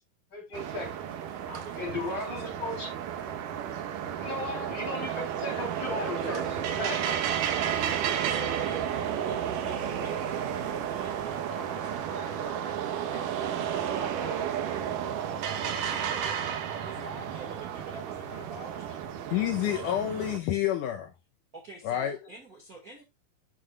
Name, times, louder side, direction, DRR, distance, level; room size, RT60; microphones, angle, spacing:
voice 1, 0.3-1.0 1.8-2.9 4.2-6.4 6.8-7.0, left 2 dB, 30° left, 4.1 m, -35 dB
sound 1, 0.5-20.4, right 9 dB, 70° right, 2.5 m, -32 dB
voice 2, 1.5-2.5 6.2-6.4 7.1-8.9 9.2-9.4 9.6-15.1 15.6-16.5 16.8-19.0 21.5-23.0, right 1 dB, 30° right, 2.0 m, -47 dB
voice 3, 19.3-21.1 21.8-22.2, left 11 dB, 75° left, 2.1 m, -28 dB
11.0 x 7.8 x 2.4 m
omnidirectional pair, 4.1 m